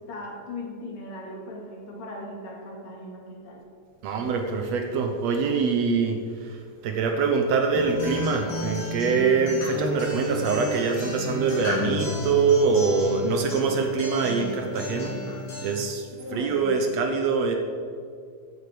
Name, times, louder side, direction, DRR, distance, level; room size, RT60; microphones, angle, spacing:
voice 1, 0.0-3.6 16.1-16.9, left 1 dB, 65° left, -1 dB, 3.4 m, -38 dB
voice 2, 4.0-15.2 15.6-17.6, right 5 dB, 70° right, 5 dB, 1.9 m, -24 dB
Acoustic guitar, 7.7-15.7, left 1 dB, 85° left, 5.2 m, -32 dB
14.0 x 8.8 x 5.0 m, 2.2 s
omnidirectional pair, 3.4 m